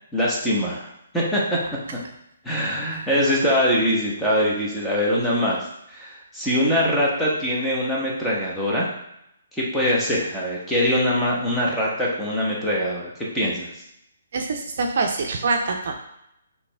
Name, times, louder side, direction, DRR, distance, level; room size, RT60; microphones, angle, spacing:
voice 1, 0.1-0.9 1.1-1.6 2.4-5.6 5.9-8.9 9.5-13.7, equal, 5° left, -6 dB, 1.0 m, -23 dB
voice 2, 14.3-15.9, right 3 dB, 55° right, 3 dB, 0.5 m, -24 dB
4.0 x 2.8 x 3.3 m, 0.80 s
figure-of-eight pair, 135°, 0 cm